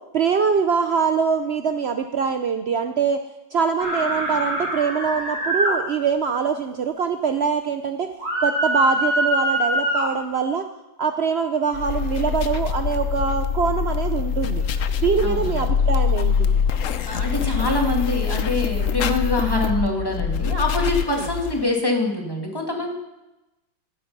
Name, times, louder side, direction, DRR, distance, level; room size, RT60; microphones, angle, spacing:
voice 1, 0.1-3.2 3.5-8.1 8.4-10.7 11.0-14.6 15.0-16.6 21.2-21.3, right 6 dB, 70° right, 7 dB, 0.6 m, -23 dB
sound 1, 3.8-5.7 8.2-10.1, right 1 dB, 55° right, 5.1 m, -23 dB
sound 2, 11.7-21.6, left 7 dB, 60° left, 0.9 m, -24 dB
voice 2, 15.2-15.7 17.1-23.0, left 2 dB, 10° left, 0 dB, 2.2 m, -24 dB
15.5 x 12.0 x 5.5 m, 0.99 s
omnidirectional pair, 2.1 m